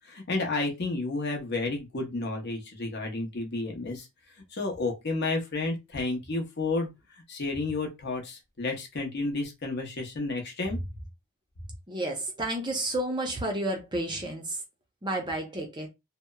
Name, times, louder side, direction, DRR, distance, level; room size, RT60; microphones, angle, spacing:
voice 1, 0.0-4.1 4.5-6.9 7.3-10.8, left 3 dB, 50° left, 0.7 m, -31 dB
voice 2, 11.9-14.6 15.0-15.9, right 1 dB, 20° right, 0.5 m, -31 dB
2.8 x 2.0 x 2.2 m
head